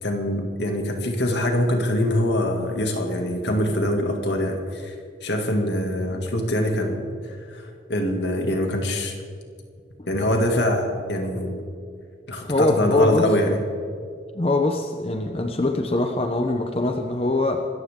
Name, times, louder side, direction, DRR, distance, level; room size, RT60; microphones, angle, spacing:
voice 1, 0.0-4.9 5.2-9.2 10.1-11.6 12.3-13.6, left 1 dB, 70° left, 2 dB, 2.4 m, -24 dB
voice 2, 12.5-13.3 14.3-17.6, left 2 dB, 30° left, 4 dB, 0.8 m, -22 dB
25.5 x 14.5 x 3.8 m, 2.3 s
head